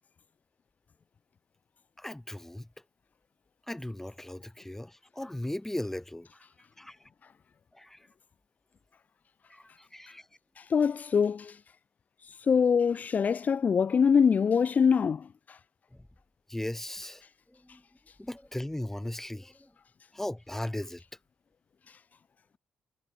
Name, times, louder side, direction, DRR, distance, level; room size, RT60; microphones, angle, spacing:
voice 1, 2.0-2.7 3.7-6.4 6.8-7.0 7.7-8.0 9.5-10.2 16.5-17.2 17.6-17.8 18.2-19.7 20.1-21.0, left 1 dB, 10° left, 4.5 m, -37 dB
voice 2, 10.6-11.6 12.3-15.6, left 6 dB, 50° left, 0.6 m, -24 dB
supercardioid pair, 60°, 4 cm